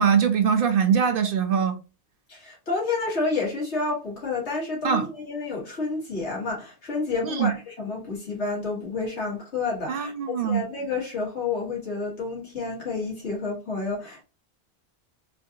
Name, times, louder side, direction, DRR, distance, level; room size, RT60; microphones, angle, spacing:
voice 1, 0.0-1.8 4.8-5.0 7.2-7.5 9.9-10.6, right 7 dB, 60° right, 0.8 m, -22 dB
voice 2, 2.3-14.2, left 3 dB, 90° left, 2.2 m, -30 dB
4.3 x 2.6 x 2.7 m
omnidirectional pair, 1.1 m